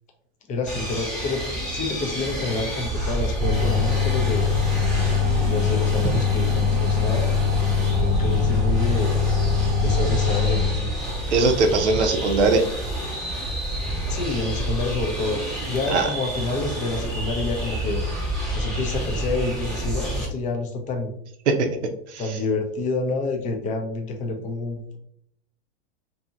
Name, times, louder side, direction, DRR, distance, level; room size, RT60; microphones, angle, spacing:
voice 1, 0.5-4.5 5.4-7.3 8.0-9.1 9.8-10.9 13.5-13.6 14.1-18.0 18.5-21.1 22.2-25.0, left 3 dB, 25° left, 4 dB, 0.5 m, -28 dB
sound 1, 0.7-20.3, right 1 dB, ahead, 0.8 m, -29 dB
sound 2, 3.4-10.7, left 6 dB, 35° right, 0.4 m, -22 dB
voice 2, 11.3-12.6 15.9-16.1 21.5-21.7 22.1-22.2, right 3 dB, 85° right, 5 dB, 0.6 m, -20 dB
2.7 x 2.7 x 2.4 m, 0.70 s
hypercardioid pair, 110°, 33 cm